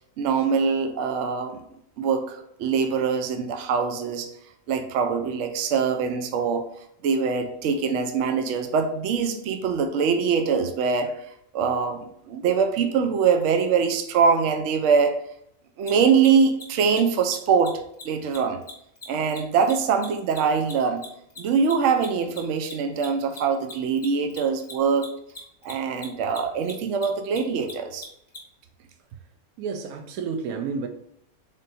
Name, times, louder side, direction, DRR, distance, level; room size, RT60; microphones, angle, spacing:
voice 1, 0.2-1.6 2.0-4.3 4.7-6.6 7.0-11.1 11.5-15.2 15.8-17.8 18.0-18.6 19.1-21.0 21.4-25.1 25.6-28.1, right 6 dB, 65° right, 0.8 m, -23 dB
Mechanisms, 15.8-15.9 16.2-16.3 16.5-16.6 16.9-17.0 17.2-17.3 17.6-17.7 17.9-18.0 18.3-21.1 21.3-28.4, left 4 dB, 35° left, 0.9 m, -40 dB
voice 2, 29.6-30.9, right 5 dB, 85° right, 1.1 m, -30 dB
3.7 x 2.5 x 4.0 m
omnidirectional pair, 1.5 m